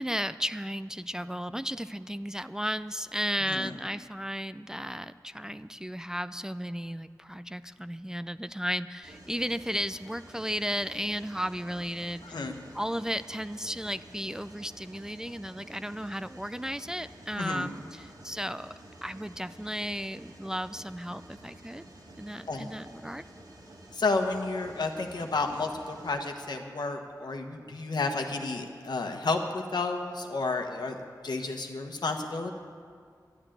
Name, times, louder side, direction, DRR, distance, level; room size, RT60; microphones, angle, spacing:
voice 1, 0.0-12.4 12.7-18.7 19.0-21.8 22.2-23.2, equal, 10° right, 12 dB, 0.3 m, -34 dB
voice 2, 3.4-3.7 12.2-12.6 17.4-17.7 22.5-22.7 23.9-32.5, left 3 dB, 85° left, 4 dB, 1.2 m, -31 dB
Mechanisms, 9.0-26.1, right 1 dB, 90° right, 2.6 m, -51 dB
12.0 x 10.0 x 9.0 m, 2.2 s
wide cardioid pair, 85°, 7 cm